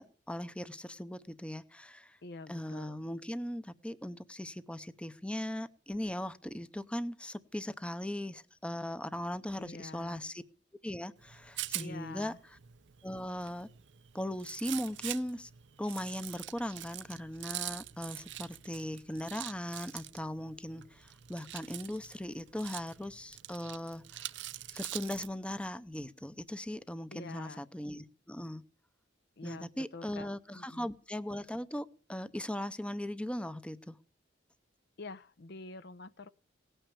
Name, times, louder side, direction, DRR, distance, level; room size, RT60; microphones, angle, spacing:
voice 1, 0.0-2.2 2.5-10.4 10.8-12.6 13.0-13.7 14.1-15.5 15.8-24.3 24.7-28.6 29.4-34.0, left 1 dB, 5° left, 0.7 m, -39 dB
voice 2, 2.2-3.0 9.6-10.2 11.8-12.4 27.1-27.6 29.4-30.3 30.5-30.9 35.0-36.3, left 3 dB, 60° left, 0.7 m, -46 dB
Rattle, 11.2-25.3, right 14 dB, 65° right, 0.6 m, -45 dB
18.0 x 9.0 x 7.0 m
head